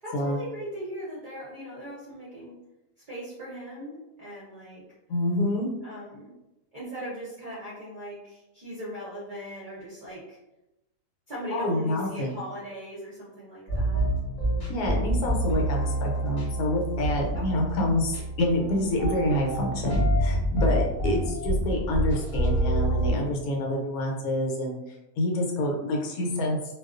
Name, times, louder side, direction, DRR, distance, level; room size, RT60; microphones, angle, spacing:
voice 1, 0.0-2.6 3.1-4.8 5.8-6.3 6.7-10.4 11.3-14.1 17.3-17.6, equal, 45° right, -9 dB, 0.7 m, -39 dB
voice 2, 5.1-5.7 11.5-12.3 14.7-24.8 25.2-26.6, left 1 dB, 75° left, 0 dB, 1.0 m, -27 dB
sound 1, 13.7-23.2, right 1 dB, 35° left, 0.8 m, -27 dB
2.3 x 2.3 x 2.4 m, 0.94 s
omnidirectional pair, 1.6 m